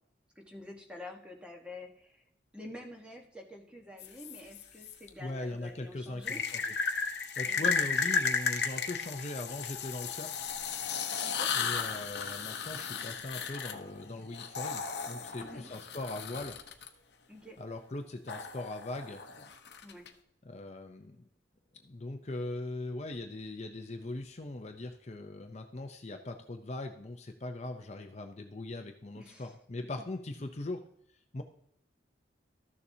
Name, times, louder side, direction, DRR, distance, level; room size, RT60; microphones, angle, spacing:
voice 1, 0.3-2.2 2.5-6.4 7.5-7.7 11.2-11.5 15.4-15.7 17.3-17.6 19.8-20.1 29.2-29.5, left 1 dB, 5° right, 2 dB, 1.3 m, -48 dB
sound 1, 4.0-4.9 6.2-16.9 18.3-20.1, left 5 dB, 65° left, 0.9 m, -34 dB
voice 2, 5.2-6.7 7.4-10.5 11.5-16.6 17.6-19.2 20.5-21.3 21.8-30.8 31.3-31.4, left 2 dB, 35° left, 5 dB, 0.6 m, -40 dB
13.5 x 7.0 x 2.8 m, 0.71 s
head